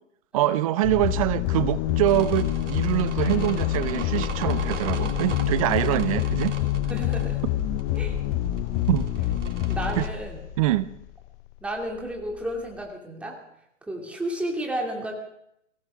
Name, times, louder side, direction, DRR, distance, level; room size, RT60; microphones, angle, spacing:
voice 1, 0.3-6.6 8.9-9.1 10.0-10.1 10.6-10.9, right 15 dB, 30° right, 0.6 m, -24 dB
sound 1, 0.8-11.0, left 12 dB, 25° left, 0.8 m, -27 dB
sound 2, 2.0-10.1, right 6 dB, 75° right, 3.0 m, -41 dB
voice 2, 6.9-7.4 7.9-8.2 9.7-10.4 11.6-13.4 13.8-15.1, right 1 dB, 5° right, 2.7 m, -32 dB
23.0 x 17.0 x 3.7 m
hypercardioid pair, 130°, 36 cm